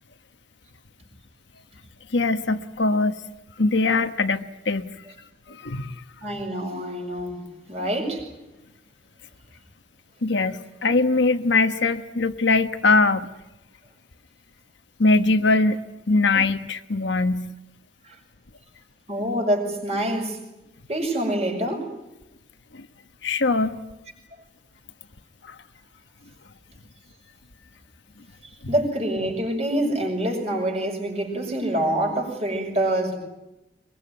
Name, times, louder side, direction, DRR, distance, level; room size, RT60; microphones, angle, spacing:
voice 1, 2.1-3.1 3.6-4.9 5.6-5.9 10.2-13.3 15.0-15.8 16.1-17.5 22.7-22.9 23.2-23.7 25.5-25.6, left 3 dB, 75° left, 8 dB, 1.2 m, -21 dB
voice 2, 6.2-8.2 18.1-18.2 19.1-20.4 20.9-21.9 28.7-33.2, right 1 dB, 35° right, 3 dB, 6.3 m, -26 dB
23.5 x 22.5 x 9.5 m, 0.96 s
head